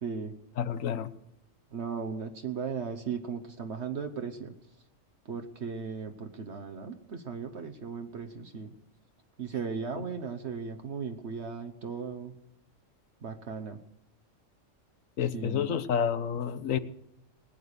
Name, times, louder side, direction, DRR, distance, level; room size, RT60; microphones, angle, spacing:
voice 1, 0.0-0.3 1.7-4.5 5.3-8.7 9.4-12.3 13.2-13.8 15.3-15.8, right 6 dB, 60° right, 6 dB, 1.3 m, -37 dB
voice 2, 0.6-1.1 10.0-10.1 15.2-16.8, left 8 dB, 85° left, 14 dB, 1.3 m, -29 dB
20.0 x 9.2 x 6.7 m, 0.85 s
omnidirectional pair, 1.3 m